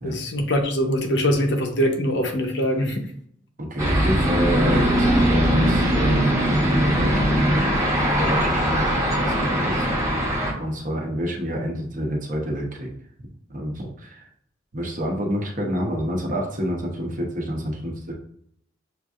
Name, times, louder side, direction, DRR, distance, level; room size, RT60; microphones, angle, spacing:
voice 1, 0.0-3.0, equal, 70° left, 3 dB, 0.9 m, -23 dB
voice 2, 3.6-7.5 8.1-9.9 10.6-12.9 13.5-14.2 14.7-18.1, equal, 45° right, 0 dB, 1.0 m, -28 dB
sound 1, 3.8-10.5, equal, 15° right, 1.1 m, -20 dB
6.8 x 2.7 x 2.4 m, 0.66 s
head